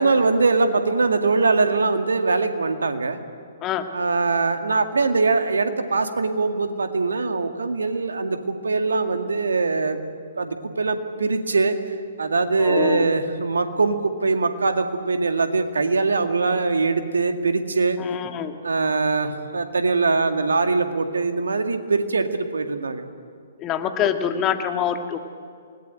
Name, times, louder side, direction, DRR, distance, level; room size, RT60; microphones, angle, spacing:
voice 1, 0.0-3.2 3.9-10.0 10.4-11.8 12.2-18.0 18.6-23.0, right 3 dB, 75° right, 7 dB, 2.1 m, -22 dB
voice 2, 12.6-13.1 18.0-18.6 23.6-25.2, left 9 dB, 25° left, 6 dB, 2.0 m, -25 dB
28.5 x 18.5 x 9.1 m, 2.2 s
figure-of-eight pair, 125°, 0 cm